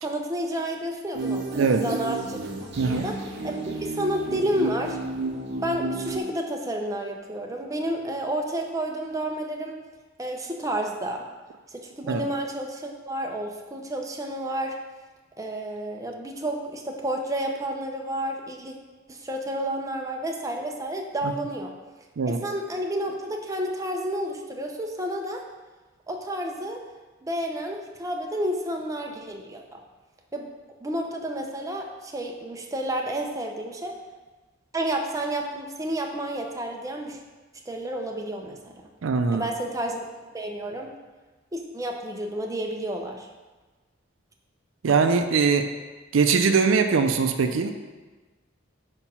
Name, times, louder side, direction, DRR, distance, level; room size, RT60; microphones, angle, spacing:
voice 1, 0.0-2.4 2.9-3.2 3.4-5.0 5.6-9.8 10.2-11.3 11.7-14.7 15.4-18.7 19.1-21.7 22.3-25.4 26.1-26.8 27.2-29.8 30.3-30.5 30.8-33.9 34.7-37.2 37.7-38.8 39.3-40.0 40.3-40.9 41.5-43.3, right 1 dB, 15° right, 1 dB, 0.6 m, -30 dB
sound 1, 1.1-6.2, right 3 dB, 60° right, 0.9 m, -32 dB
voice 2, 2.8-3.1 12.1-12.2 22.2-22.4 39.0-39.5 44.8-45.7 46.1-47.7, right 5 dB, 80° right, 7 dB, 0.4 m, -21 dB
4.8 x 4.5 x 5.5 m, 1.3 s
head